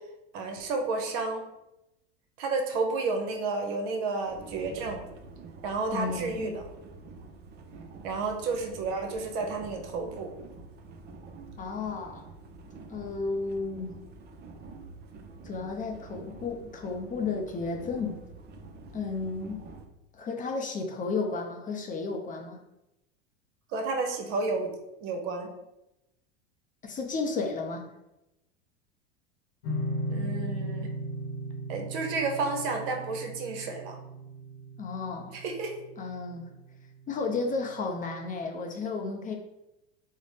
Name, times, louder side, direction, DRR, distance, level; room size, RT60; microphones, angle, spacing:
voice 1, 0.3-1.4 2.4-5.0 5.6-6.6 8.0-10.3 23.7-24.7 25.0-25.5 30.1-30.9 31.7-34.0 35.3-35.7, right 3 dB, 60° right, 3 dB, 0.8 m, -31 dB
sound 1, 4.3-19.9, right 3 dB, 30° right, 0.4 m, -47 dB
voice 2, 5.9-6.6 11.6-12.2 12.9-14.0 15.4-18.2 18.9-19.6 20.1-22.6 26.8-27.9 34.8-35.4 36.0-36.5 37.1-39.3, left 4 dB, 25° left, 2 dB, 0.5 m, -33 dB
sound 2, 29.6-36.8, right 1 dB, 85° left, 0.9 m, -36 dB
3.8 x 2.0 x 3.2 m, 0.92 s
hypercardioid pair, 95°, 33 cm